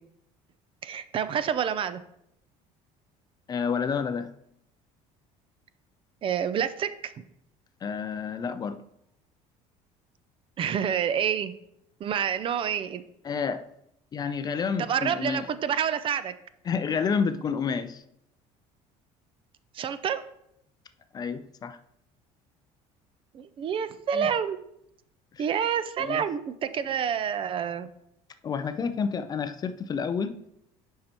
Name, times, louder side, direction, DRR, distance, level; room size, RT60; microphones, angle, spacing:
voice 1, 0.8-2.0 6.2-7.1 10.6-11.5 12.0-13.0 14.8-16.3 19.7-20.2 23.3-24.6 25.4-27.9, right 8 dB, 40° right, 13 dB, 0.5 m, -28 dB
voice 2, 3.5-4.3 7.8-8.8 13.2-13.7 14.1-15.5 16.6-18.0 21.1-21.8 24.1-24.3 25.3-25.5 26.0-26.3 28.4-30.4, left 6 dB, 30° left, 11 dB, 0.4 m, -29 dB
9.6 x 5.5 x 2.9 m, 0.77 s
cardioid pair, 125°, 14 cm